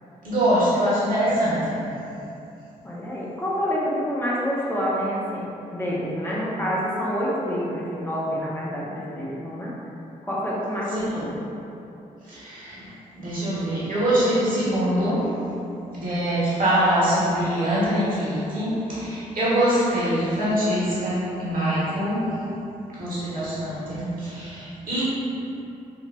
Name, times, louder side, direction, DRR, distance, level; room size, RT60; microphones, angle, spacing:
voice 1, 0.2-1.8 10.9-11.0 12.3-12.9 13.1-15.3 15.9-22.2 22.9-25.0, equal, 55° right, -10 dB, 1.4 m, -23 dB
voice 2, 2.8-5.5 5.7-9.7 10.3-11.3, equal, 15° left, -6 dB, 0.7 m, -27 dB
3.9 x 2.5 x 2.2 m, 2.8 s
supercardioid pair, 45°, 17 cm